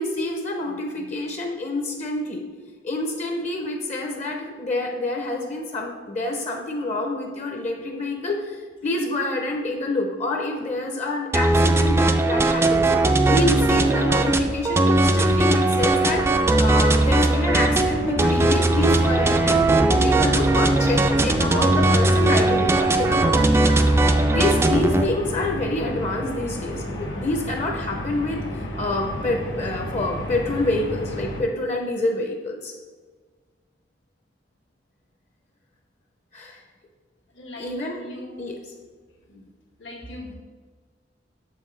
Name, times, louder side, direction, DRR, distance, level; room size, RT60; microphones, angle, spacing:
voice 1, 0.0-2.4 2.8-16.2 16.6-19.7 20.0-23.7 24.3-32.7 36.3-36.6 37.6-38.0 38.4-38.6, left 2 dB, 40° left, 2 dB, 0.6 m, -27 dB
sound 1, 11.3-25.0, right 2 dB, 15° right, 0.3 m, -19 dB
sound 2, 17.5-31.4, equal, 70° left, 0.9 m, -32 dB
voice 2, 37.3-37.7 38.0-38.5 39.3-39.4 39.8-40.3, left 1 dB, 85° left, -1 dB, 1.6 m, -39 dB
6.9 x 5.5 x 3.2 m, 1.5 s
head